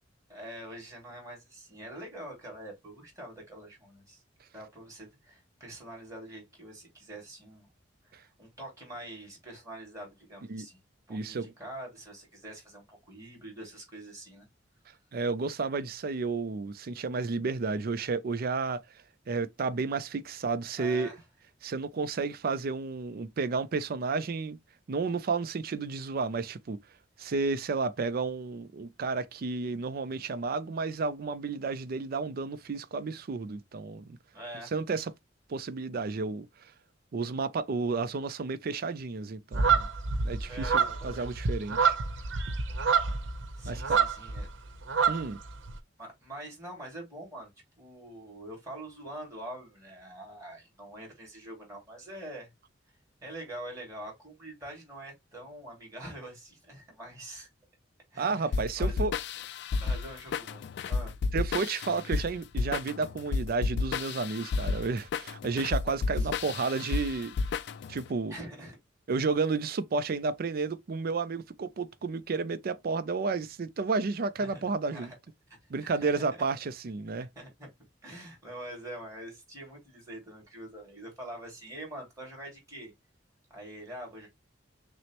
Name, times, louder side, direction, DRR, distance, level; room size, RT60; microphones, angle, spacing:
voice 1, 0.3-4.2 4.5-7.7 8.0-10.8 11.1-14.5 20.8-21.2 34.3-34.7 40.5-41.4 43.6-44.5 46.0-47.5 47.8-52.5 53.2-57.5 58.1-59.0 59.8-61.1 66.1-66.5 68.3-68.8 74.4-74.6 74.9-75.2 75.8-76.2 77.2-77.7 78.0-82.9 83.5-84.3, right 1 dB, 20° right, 2.3 m, -45 dB
voice 2, 11.1-11.5 15.1-18.8 19.3-21.1 21.6-24.6 24.9-26.8 27.2-34.2 34.7-35.1 35.5-36.5 37.1-39.9 40.2-42.0 43.7-44.0 45.1-45.4 58.2-59.1 61.3-67.3 67.9-68.3 69.1-75.1 75.7-77.3, right 4 dB, 50° right, 0.4 m, -32 dB
sound 1, 39.5-44.5 44.7-45.7, right 5 dB, 90° right, 0.8 m, -27 dB
sound 2, 58.5-68.1, left 4 dB, 65° left, 0.3 m, -32 dB
6.1 x 2.1 x 2.9 m
head